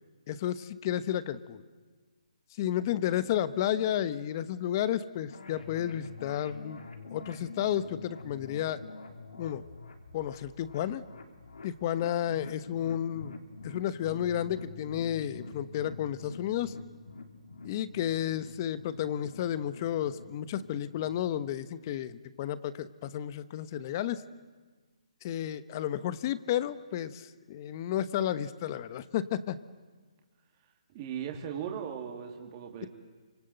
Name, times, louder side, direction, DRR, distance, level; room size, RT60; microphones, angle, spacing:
voice 1, 0.3-1.6 2.6-6.8 7.1-8.8 9.4-9.6 10.1-11.0 11.6-13.3 13.6-16.7 17.6-24.2 25.2-29.6, left 11 dB, 30° left, 15 dB, 1.0 m, -32 dB
sound 1, 5.3-21.2, left 3 dB, 80° left, 3.5 m, -47 dB
voice 2, 30.9-32.9, right 8 dB, 30° right, 2 dB, 3.0 m, -38 dB
29.0 x 25.5 x 7.9 m, 1.4 s
hypercardioid pair, 160°, 4 cm